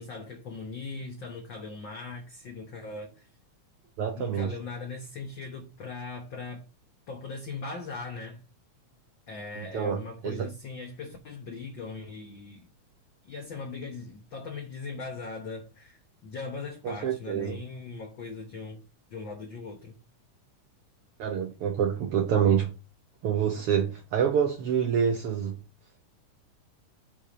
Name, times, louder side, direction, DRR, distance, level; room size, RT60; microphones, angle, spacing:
voice 1, 0.0-3.3 4.2-6.6 7.1-8.4 9.3-12.6 13.2-18.8 19.1-20.0, left 4 dB, 55° left, 1.4 m, -39 dB
voice 2, 4.0-4.5 9.6-10.5 16.8-17.6 21.2-22.7 23.2-25.6, right 8 dB, 70° right, 1.4 m, -27 dB
7.0 x 4.5 x 5.0 m
omnidirectional pair, 3.7 m